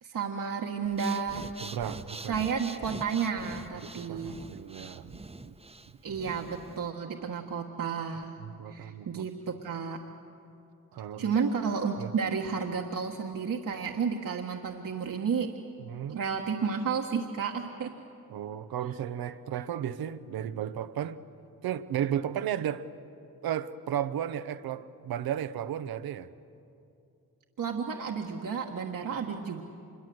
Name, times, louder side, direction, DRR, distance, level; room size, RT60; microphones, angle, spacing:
voice 1, 0.0-1.5 2.3-4.4 6.0-8.3 8.7-10.0 11.2-15.5 16.1-18.0 27.6-29.6, right 6 dB, 65° right, 1 dB, 1.5 m, -32 dB
Breathing, 0.8-6.9, right 2 dB, 15° right, 1.0 m, -44 dB
voice 2, 1.6-2.4 3.8-5.5 6.1-6.2 8.4-9.3 10.9-11.3 12.0-12.1 15.8-16.2 18.3-21.2 21.6-22.9 23.4-26.3, right 10 dB, 85° right, 12 dB, 0.9 m, -34 dB
25.5 x 22.5 x 7.9 m, 2.6 s
cardioid pair, 55°, 35 cm